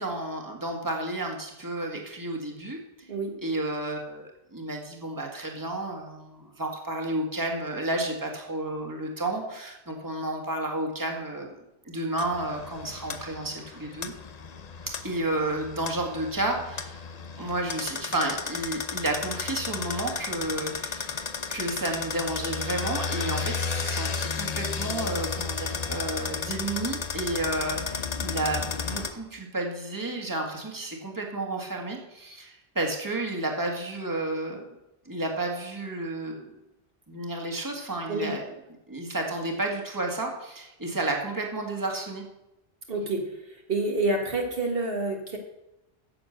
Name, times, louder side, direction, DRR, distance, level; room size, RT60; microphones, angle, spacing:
voice 1, 0.0-2.8 3.4-11.6 11.9-14.1 14.9-17.1 17.4-21.2 21.5-34.6 35.1-36.5 37.1-38.4 38.9-42.2, right 2 dB, 20° right, 1 dB, 1.8 m, -31 dB
sound 1, 12.2-29.1, left 5 dB, 45° left, 0.8 m, -33 dB
voice 2, 42.9-45.4, right 2 dB, 65° right, 1 dB, 1.9 m, -28 dB
10.0 x 7.0 x 7.8 m, 0.91 s
omnidirectional pair, 1.1 m